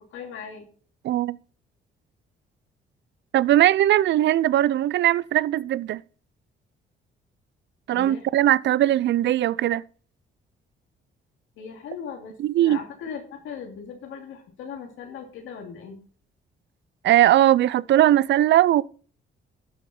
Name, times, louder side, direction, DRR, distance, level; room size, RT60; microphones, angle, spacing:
voice 1, 0.1-0.6 7.9-8.3 11.6-16.0, left 6 dB, 85° left, 2.5 m, -38 dB
voice 2, 1.0-1.4 3.3-6.0 7.9-9.8 12.4-12.8 17.0-18.8, right 13 dB, 65° right, 0.4 m, -19 dB
12.5 x 6.4 x 4.3 m
cardioid pair, 90°, 20 cm